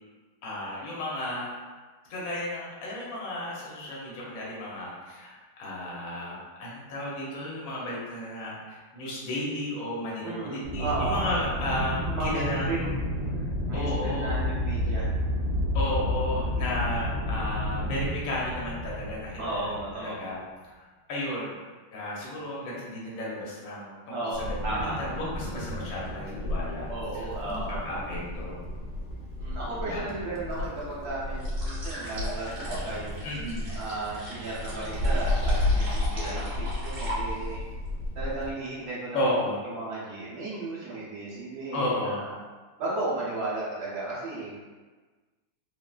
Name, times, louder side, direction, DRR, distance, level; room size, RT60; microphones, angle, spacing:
voice 1, 0.4-1.5 2.1-12.8 13.7-14.4 15.7-20.4 20.7-21.6 21.9-28.6 29.8-30.1 33.2-33.6 39.1-39.6 41.7-42.2, left 1 dB, 60° left, -5 dB, 0.9 m, -33 dB
voice 2, 10.2-11.2 12.1-12.9 13.7-15.1 19.4-20.2 24.1-24.9 26.9-27.8 29.4-33.3 33.7-37.6 38.1-39.3 39.7-42.3 42.8-44.5, right 2 dB, 55° right, -8 dB, 1.2 m, -34 dB
Aircraft, 10.6-20.1, left 1 dB, 80° right, 0.7 m, -30 dB
Wind, 24.3-38.5, left 1 dB, 80° left, 1.4 m, -32 dB
sound 1, 31.4-37.6, right 1 dB, 40° right, 1.4 m, -39 dB
3.8 x 2.0 x 2.3 m, 1.3 s
omnidirectional pair, 2.3 m